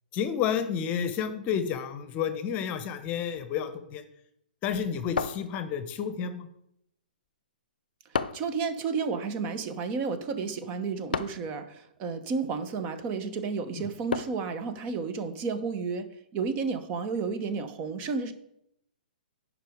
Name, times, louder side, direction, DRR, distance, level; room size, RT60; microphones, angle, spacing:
voice 1, 0.1-4.0 4.6-6.5, left 8 dB, 30° left, 10 dB, 0.9 m, -30 dB
sound 1, 5.2-6.0 8.1-8.6 11.1-11.5 14.1-14.5, left 6 dB, 70° left, 0.5 m, -32 dB
voice 2, 8.3-18.3, right 5 dB, 30° right, 10 dB, 0.9 m, -32 dB
10.5 x 5.4 x 5.0 m, 0.76 s
figure-of-eight pair, 120°, 5 cm